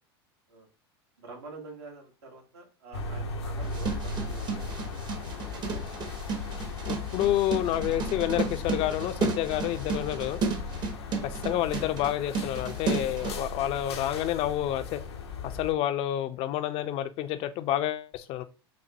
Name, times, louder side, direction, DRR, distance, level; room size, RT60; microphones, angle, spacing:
voice 1, 1.2-4.9 5.3-6.9, right 3 dB, 80° right, 1.3 m, -49 dB
sound 1, 2.9-15.7, left 3 dB, 80° left, 0.7 m, -37 dB
sound 2, 3.6-13.4, right 5 dB, 35° right, 0.8 m, -33 dB
voice 2, 6.9-10.4 11.2-15.0 15.4-18.4, left 12 dB, 45° left, 0.5 m, -29 dB
6.1 x 2.0 x 2.7 m
hypercardioid pair, 90°, 14 cm